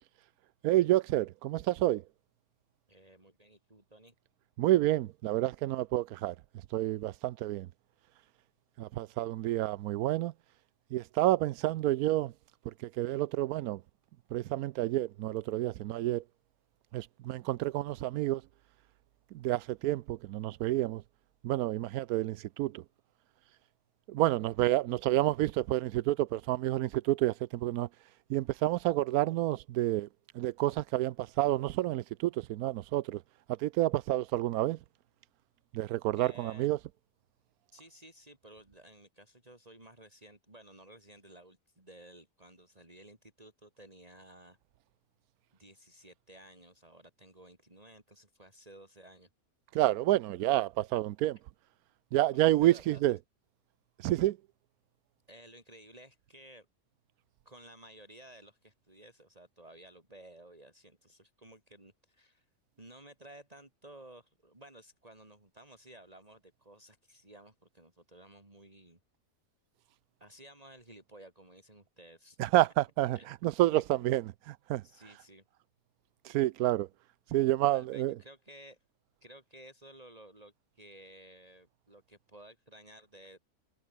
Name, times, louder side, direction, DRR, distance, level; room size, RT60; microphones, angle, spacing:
voice 1, 0.6-2.0 4.6-6.3 6.7-7.7 8.8-10.3 10.9-12.3 12.8-13.8 14.3-16.2 16.9-18.4 19.3-21.0 21.4-22.8 24.1-27.9 28.3-30.1 30.3-33.2 33.6-34.8 35.7-36.8 49.7-51.4 52.1-53.2 54.0-54.4 72.4-73.2 73.4-74.8 76.2-76.9 77.3-78.1, right 15 dB, 80° right, 1.1 m, -29 dB
voice 2, 2.9-4.1 36.2-36.7 37.7-44.6 45.6-49.3 52.3-53.1 55.3-56.7 57.5-62.5 62.8-69.0 70.2-72.6 73.1-73.3 73.7-74.1 74.8-75.4 77.7-78.8 79.2-83.4, right 1 dB, 25° right, 4.0 m, -55 dB
omnidirectional pair, 1.6 m